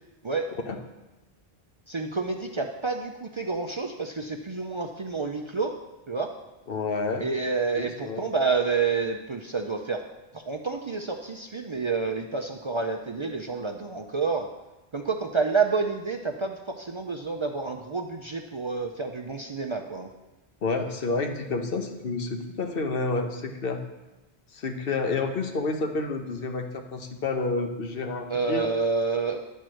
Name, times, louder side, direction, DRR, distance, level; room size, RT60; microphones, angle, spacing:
voice 1, 1.9-5.8 6.1-6.4 7.2-10.0 10.3-14.5 14.9-20.1 28.3-29.4, right 4 dB, 40° right, 4 dB, 0.4 m, -29 dB
voice 2, 6.7-7.2 7.8-8.2 20.6-23.8 24.5-28.7, left 3 dB, 65° left, 5 dB, 1.1 m, -29 dB
10.5 x 4.5 x 6.3 m, 1.0 s
omnidirectional pair, 1.0 m